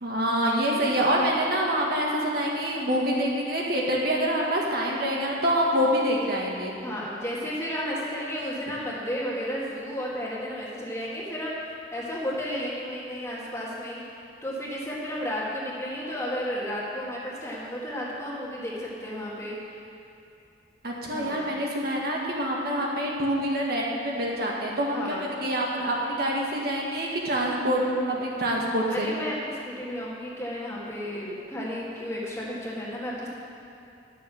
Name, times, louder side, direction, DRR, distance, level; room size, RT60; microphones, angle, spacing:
voice 1, 0.0-6.7 20.8-29.1, equal, 60° right, -3 dB, 1.7 m, -26 dB
voice 2, 6.8-14.0 14.4-19.6 21.1-21.6 24.9-25.3 28.9-33.3, equal, 15° left, -6 dB, 1.9 m, -33 dB
11.5 x 6.6 x 7.0 m, 2.7 s
head